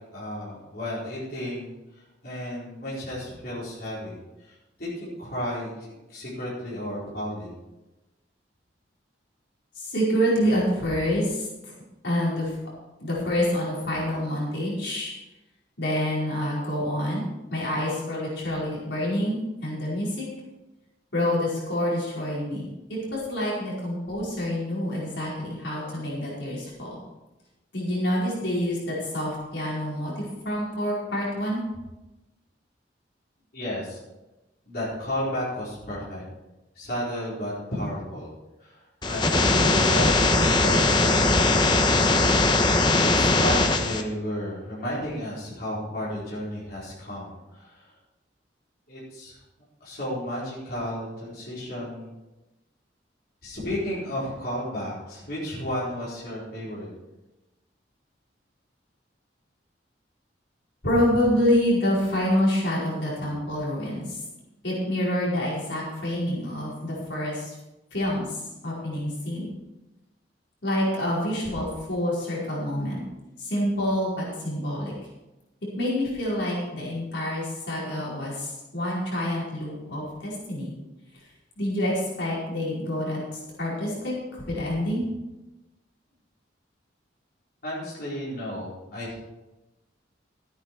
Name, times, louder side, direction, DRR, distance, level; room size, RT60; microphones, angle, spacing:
voice 1, 0.1-7.5 33.5-34.0 34.6-36.2 36.7-38.3 38.6-41.5 41.8-42.2 42.6-47.9 48.9-49.4 49.8-52.1 53.4-56.9 87.6-89.2, equal, 55° left, -8 dB, 4.5 m, -33 dB
voice 2, 9.7-11.7 12.0-12.5 13.0-15.1 15.8-17.2 17.5-20.3 21.1-27.0 27.7-31.6 60.8-64.2 64.6-67.6 67.9-69.5 70.6-73.0 73.4-74.9 75.8-80.7 81.6-85.1, left 1 dB, 75° left, -6 dB, 4.9 m, -27 dB
sound 1, 39.0-44.0, left 2 dB, 25° left, 0.9 m, -20 dB
13.5 x 9.5 x 4.7 m, 1.0 s
head